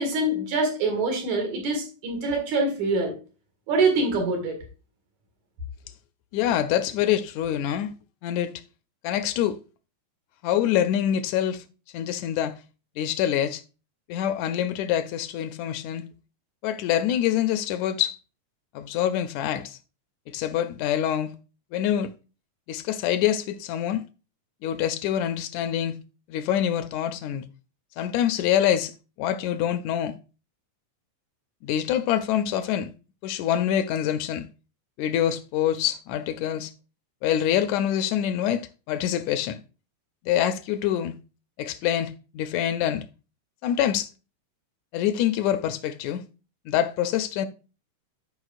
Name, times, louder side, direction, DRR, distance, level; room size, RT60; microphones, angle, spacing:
voice 1, 0.0-3.1 3.7-4.6, right 2 dB, 80° right, 3.3 m, -24 dB
voice 2, 6.3-7.9 8.2-8.5 9.0-9.6 10.4-11.6 11.9-12.6 13.0-13.6 14.1-16.0 16.6-18.2 18.8-19.8 20.3-21.3 21.7-22.1 22.7-24.0 24.6-26.0 26.3-27.4 28.0-28.9 29.2-30.2 31.6-32.9 33.2-34.5 35.0-36.7 37.2-39.6 40.3-41.1 41.6-43.0 43.6-44.1 44.9-46.2 46.7-47.5, left 10 dB, 80° left, 1.8 m, -25 dB
12.5 x 5.3 x 2.4 m
omnidirectional pair, 3.3 m